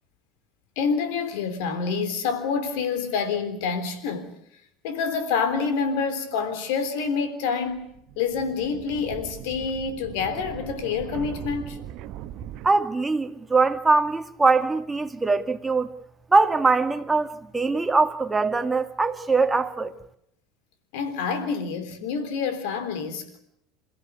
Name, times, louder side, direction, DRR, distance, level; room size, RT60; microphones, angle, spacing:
voice 1, 0.8-4.3 4.8-11.8 20.9-23.4, left 5 dB, 65° left, 3.5 m, -27 dB
sound 1, 7.7-12.7, right 11 dB, 55° right, 1.3 m, -39 dB
voice 2, 12.6-15.9 16.3-19.9, right 3 dB, 15° right, 2.0 m, -22 dB
28.0 x 15.5 x 9.6 m
figure-of-eight pair, 70°, 0 cm